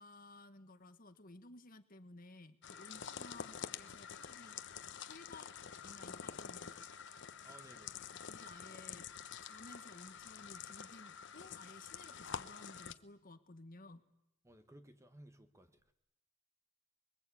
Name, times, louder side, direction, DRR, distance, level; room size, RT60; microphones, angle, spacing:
voice 1, 0.0-4.6 5.1-5.5 5.8-6.7 8.2-9.1 9.4-14.0, left 2 dB, 40° left, 9 dB, 1.4 m, -56 dB
sound 1, 2.6-12.9, left 7 dB, 55° left, 0.9 m, -48 dB
voice 2, 7.4-8.0 14.4-15.9, right 1 dB, 15° right, 9 dB, 1.3 m, -59 dB
29.0 x 21.5 x 8.5 m, 0.87 s
head